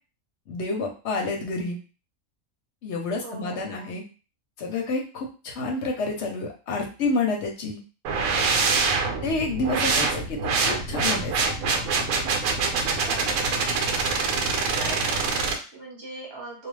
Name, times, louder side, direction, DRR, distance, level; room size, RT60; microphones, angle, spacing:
voice 1, 0.5-1.8 2.8-4.0 4.6-7.8 8.4-8.5 9.2-11.5 12.4-12.5, left 3 dB, 60° left, 1 dB, 0.8 m, -29 dB
voice 2, 3.2-4.0 13.0-13.7 14.7-16.7, right 2 dB, 20° right, -4 dB, 1.0 m, -41 dB
sound 1, 8.0-15.5, right 4 dB, 80° right, 1.0 m, -25 dB
2.4 x 2.2 x 3.2 m, 0.34 s
omnidirectional pair, 1.4 m